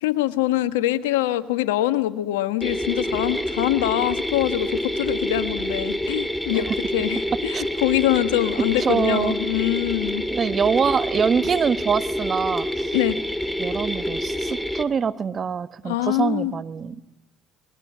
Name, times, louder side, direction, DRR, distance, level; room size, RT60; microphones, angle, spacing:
voice 1, 0.0-10.2 12.9-13.2 15.8-16.5, left 15 dB, 90° left, 13 dB, 1.3 m, -24 dB
sound 1, 2.6-14.8, equal, ahead, 2.6 m, -27 dB
voice 2, 8.8-9.4 10.3-12.9 13.6-17.0, right 6 dB, 40° right, 14 dB, 1.2 m, -24 dB
26.0 x 21.5 x 9.5 m, 0.85 s
supercardioid pair, 75°, 0 cm